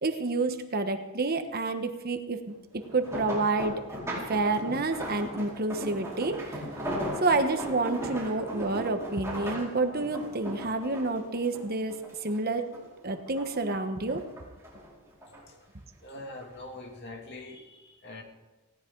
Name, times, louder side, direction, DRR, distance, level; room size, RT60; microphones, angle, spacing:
voice 1, 0.0-3.7 4.3-6.6 7.2-11.9 12.2-12.7 13.0-14.2, right 3 dB, 45° right, 7 dB, 1.2 m, -29 dB
sound 1, 2.8-12.4 12.7-13.7 14.1-15.4 16.2-16.5 16.9-17.0, equal, 15° right, 4.8 m, -37 dB
voice 2, 16.0-18.2, left 2 dB, 50° left, 2 dB, 2.6 m, -43 dB
19.0 x 17.0 x 3.9 m, 1.1 s
head